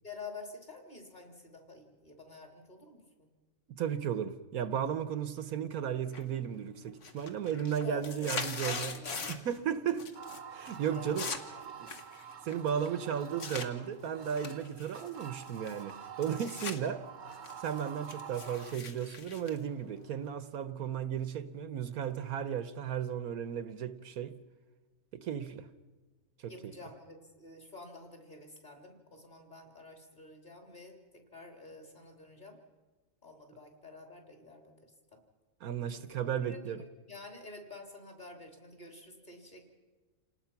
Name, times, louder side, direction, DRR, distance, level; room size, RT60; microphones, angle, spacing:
voice 1, 0.0-3.3 7.8-9.2 10.9-11.3 18.0-18.2 26.5-32.6 33.2-34.9 36.5-36.7 37.1-39.6, left 3 dB, 30° left, 3.4 m, -49 dB
voice 2, 3.7-8.9 9.3-10.1 10.5-11.3 11.7-11.9 12.4-17.0 17.6-24.4 25.1-25.7 26.4-26.7 35.6-36.8, right 8 dB, 70° right, 1.3 m, -35 dB
sound 1, 6.1-6.6 6.9-9.6 9.9-10.4 10.7-13.7 14.2-16.8 17.1-20.3, left 4 dB, 50° left, 1.7 m, -42 dB
sound 2, 10.1-18.8, right 8 dB, 45° right, 0.6 m, -48 dB
28.5 x 19.0 x 5.9 m
omnidirectional pair, 1.6 m